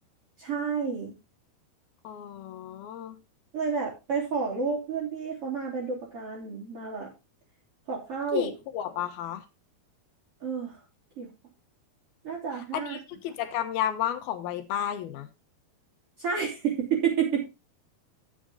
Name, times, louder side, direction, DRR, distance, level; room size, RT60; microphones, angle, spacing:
voice 1, 0.4-1.1 3.5-7.1 7.9-8.5 10.4-10.8 11.2-11.3 12.2-13.0 16.2-17.5, right 6 dB, 35° right, 4.0 m, -30 dB
voice 2, 2.0-3.2 8.3-9.4 12.7-15.3, left 10 dB, 80° left, 2.9 m, -32 dB
11.0 x 7.4 x 3.8 m
omnidirectional pair, 4.5 m